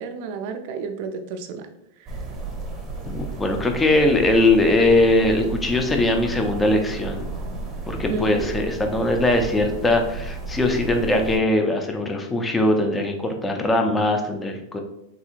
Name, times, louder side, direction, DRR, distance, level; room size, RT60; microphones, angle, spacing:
voice 1, 0.0-1.7 2.0-2.2 8.1-8.5, right 4 dB, 55° right, 6 dB, 0.4 m, -31 dB
sound 1, 2.1-11.4, right 3 dB, 25° right, 0.7 m, -33 dB
voice 2, 3.1-7.2 7.9-14.8, left 2 dB, 10° left, 4 dB, 0.4 m, -21 dB
3.5 x 2.8 x 2.4 m, 0.82 s
supercardioid pair, 145°, 0 cm